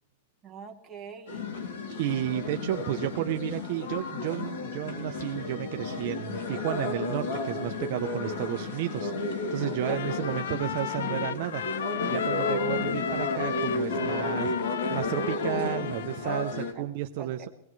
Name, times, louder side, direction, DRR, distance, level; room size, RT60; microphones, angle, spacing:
voice 1, 0.4-1.5 9.9-10.0 12.6-12.9 16.2-16.9 17.2-17.5, right 7 dB, 10° right, 0 dB, 1.3 m, -44 dB
sound 1, 1.3-16.7, left 3 dB, 70° left, 2.5 m, -32 dB
voice 2, 2.0-17.5, right 13 dB, 40° right, 5 dB, 0.6 m, -32 dB
Trumpet, 9.8-16.4, left 9 dB, 90° left, 0.6 m, -34 dB
20.5 x 17.5 x 3.2 m, 0.83 s
supercardioid pair, 175°, 0 cm